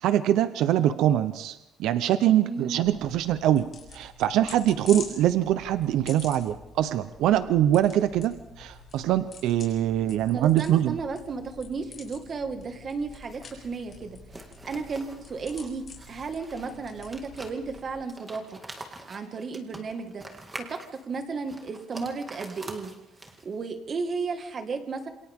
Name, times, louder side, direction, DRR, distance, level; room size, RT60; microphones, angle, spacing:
voice 1, 0.0-3.7 3.9-10.9, right 12 dB, 75° right, 11 dB, 0.8 m, -23 dB
voice 2, 2.4-2.8 10.3-14.2 14.6-18.6 19.1-20.2 20.6-22.9 23.4-25.1, right 4 dB, 30° right, 6 dB, 1.9 m, -34 dB
sound 1, 2.8-18.0, left 4 dB, 30° left, 7.8 m, -47 dB
sound 2, 13.1-23.6, right 2 dB, 15° right, 2.1 m, -46 dB
27.5 x 27.5 x 3.7 m, 0.96 s
cardioid pair, 165°, 0 cm